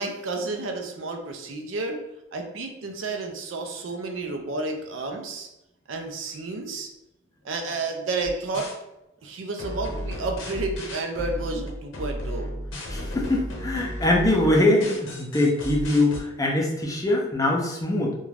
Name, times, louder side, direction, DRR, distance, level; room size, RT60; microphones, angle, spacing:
voice 1, 0.0-2.0 2.3-5.5 5.9-6.9 7.4-8.7 9.2-12.6, right 3 dB, 75° right, 4 dB, 0.5 m, -31 dB
sound 1, 8.2-8.8 9.6-16.2, equal, 75° left, 0.6 m, -34 dB
voice 2, 12.9-18.1, left 1 dB, 15° left, -2 dB, 0.4 m, -23 dB
2.4 x 2.2 x 3.2 m, 0.89 s
head